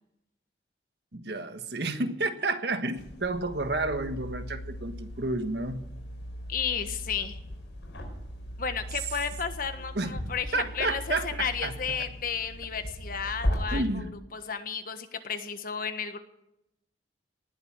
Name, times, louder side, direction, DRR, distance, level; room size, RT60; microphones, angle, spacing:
voice 1, 1.1-5.9 9.9-10.2 10.5-12.0 13.7-14.1, right 2 dB, 60° right, 8 dB, 1.4 m, -31 dB
sound 1, 3.0-13.6, equal, 75° left, 5.0 m, -38 dB
voice 2, 6.5-7.4 8.6-16.2, left 6 dB, 50° left, 8 dB, 1.4 m, -33 dB
19.0 x 7.9 x 8.8 m, 0.83 s
head